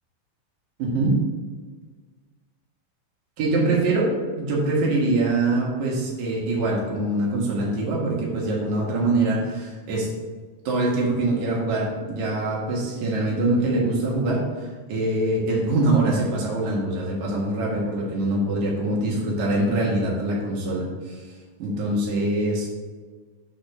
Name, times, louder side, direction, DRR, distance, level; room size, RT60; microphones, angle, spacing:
voice 1, 0.8-1.1 3.4-4.1 4.4-10.1 10.6-21.2 21.6-22.7, right 2 dB, 60° right, -4 dB, 2.6 m, -24 dB
6.3 x 4.0 x 5.8 m, 1.4 s
omnidirectional pair, 4.2 m